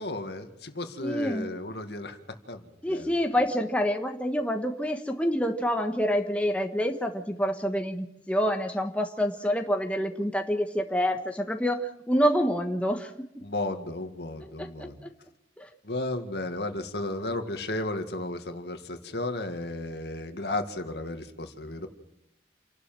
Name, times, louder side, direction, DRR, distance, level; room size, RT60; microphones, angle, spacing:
voice 1, 0.0-2.2 2.5-2.6 2.9-3.1 13.4-14.9 15.8-21.9, left 2 dB, 65° left, 7 dB, 2.1 m, -34 dB
voice 2, 1.0-1.5 2.8-13.1 14.6-15.1 15.6-15.7, equal, 5° left, 4 dB, 1.4 m, -27 dB
28.5 x 12.0 x 7.7 m, 0.83 s
head